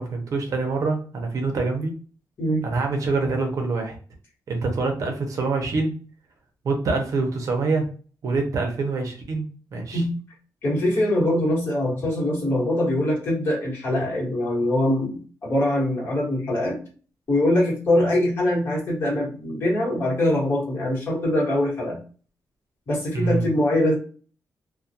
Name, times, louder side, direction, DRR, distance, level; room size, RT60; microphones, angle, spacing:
voice 1, 0.0-1.9 2.6-4.0 4.5-6.0 6.6-7.9 8.2-9.5 9.7-10.0 23.1-23.5, right 3 dB, 55° right, 3 dB, 0.6 m, -25 dB
voice 2, 10.6-16.8 17.3-22.0 22.9-23.9, left 1 dB, 35° left, -5 dB, 1.2 m, -23 dB
2.3 x 2.1 x 2.7 m, 0.39 s
wide cardioid pair, 165°, 7 cm